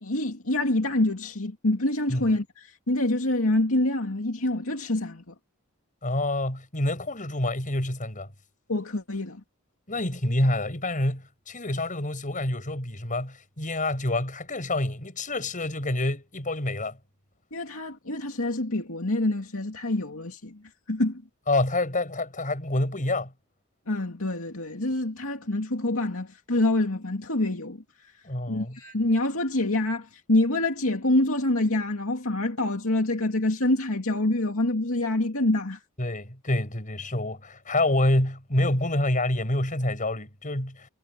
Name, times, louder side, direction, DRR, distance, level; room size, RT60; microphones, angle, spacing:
voice 1, 0.0-5.3 8.7-9.4 17.5-20.6 20.9-21.2 23.9-27.8 28.5-35.8, left 1 dB, 70° left, 2.5 m, -26 dB
voice 2, 6.0-8.3 9.9-17.0 21.5-23.3 28.2-28.8 36.0-40.9, left 1 dB, 40° left, 6.6 m, -27 dB
head